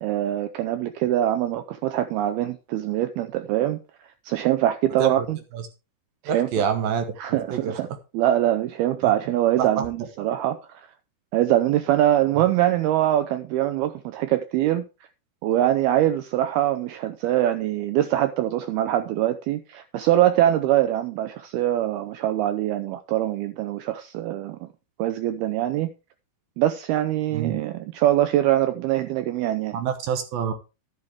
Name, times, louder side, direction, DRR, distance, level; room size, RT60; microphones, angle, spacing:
voice 1, 0.0-3.8 4.3-5.4 6.2-6.6 7.2-7.9 8.1-10.9 11.3-14.8 15.4-24.7 25.0-25.9 26.6-29.8, right 13 dB, 85° right, 2.2 m, -23 dB
voice 2, 6.3-7.0 7.3-7.6 9.0-9.1 9.6-9.9 27.3-27.6 29.7-30.5, right 7 dB, 65° right, 2.6 m, -26 dB
11.0 x 9.8 x 3.5 m
omnidirectional pair, 5.2 m